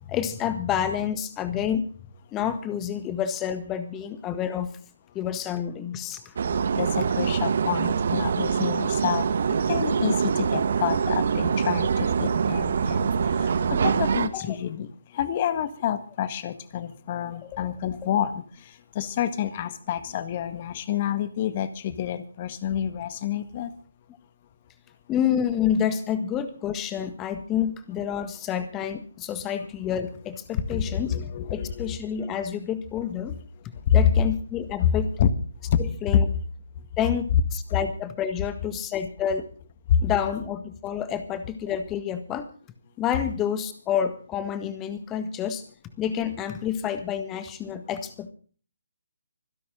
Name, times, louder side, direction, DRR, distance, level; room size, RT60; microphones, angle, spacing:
voice 1, 0.0-1.8 2.3-4.7 5.1-6.3 14.3-14.6 17.4-17.6 25.1-31.2 31.5-33.3 33.9-35.1 35.8-36.3 37.0-39.5 40.0-42.5 43.0-45.6 46.0-48.3, left 9 dB, 15° left, 11 dB, 1.6 m, -29 dB
sound 1, 6.4-14.3, right 6 dB, 50° right, 1.5 m, -24 dB
voice 2, 6.8-9.3 9.7-13.1 13.4-14.9 15.1-18.4 19.0-23.7 30.7-32.3 34.8-34.9 35.2-35.3 35.7-35.8, left 10 dB, 35° left, 13 dB, 1.7 m, -29 dB
25.0 x 11.5 x 3.8 m, 0.40 s
figure-of-eight pair, 145°, 0 cm